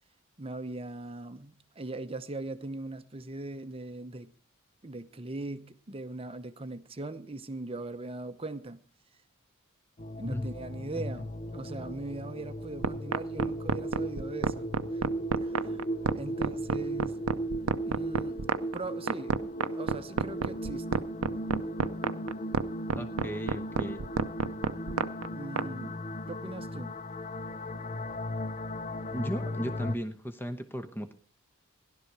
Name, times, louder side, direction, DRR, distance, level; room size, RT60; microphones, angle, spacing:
voice 1, 0.4-4.3 4.8-8.8 10.2-17.2 17.8-21.1 25.3-26.0 26.3-27.0, right 2 dB, 25° right, 0.8 m, -40 dB
sound 1, 10.0-30.0, equal, 35° left, 0.7 m, -36 dB
sound 2, 12.8-25.7, right 5 dB, 75° right, 0.6 m, -29 dB
voice 2, 23.0-24.0 29.1-31.1, equal, 10° left, 0.9 m, -36 dB
16.5 x 11.5 x 4.7 m
head